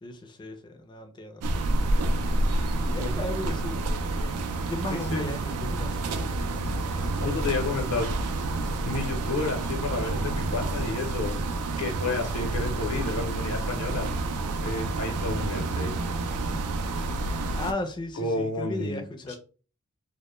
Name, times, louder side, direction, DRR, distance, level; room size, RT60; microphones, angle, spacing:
voice 1, 0.0-4.4 4.7-7.3 16.5-16.6 17.6-19.4, left 2 dB, 20° left, 0.4 m, -37 dB
sound 1, 1.4-17.7, right 2 dB, 85° right, 0.4 m, -29 dB
voice 2, 4.9-5.3 7.2-8.1 8.8-11.4 11.8-14.1 14.6-15.9 18.2-19.0 19.3-19.4, left 3 dB, 85° left, 0.7 m, -31 dB
sound 2, 5.5-18.1, equal, 60° right, 0.7 m, -42 dB
2.1 x 2.1 x 3.0 m
head